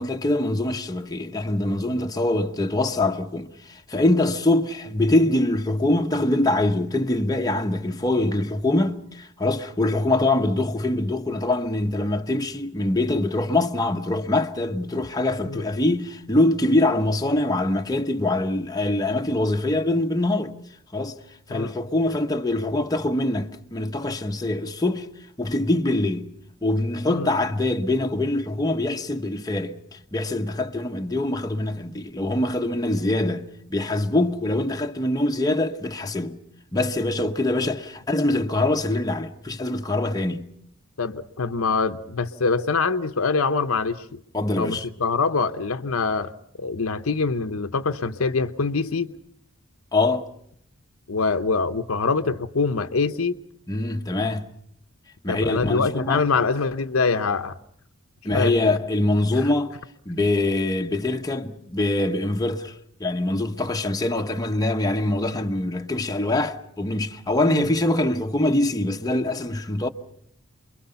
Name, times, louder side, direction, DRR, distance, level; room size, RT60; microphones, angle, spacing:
voice 1, 0.0-20.6 20.9-21.2 21.5-25.1 25.4-26.3 26.6-36.4 36.7-40.5 44.3-44.9 49.9-50.3 53.7-54.5 55.2-56.2 58.2-59.7 60.1-69.9, left 2 dB, 20° left, 1.0 m, -24 dB
voice 2, 41.0-44.2 44.6-46.3 46.6-49.1 51.1-53.4 55.3-57.6 58.3-58.5 67.5-67.7, left 4 dB, 70° left, 0.8 m, -24 dB
28.5 x 22.5 x 5.7 m
head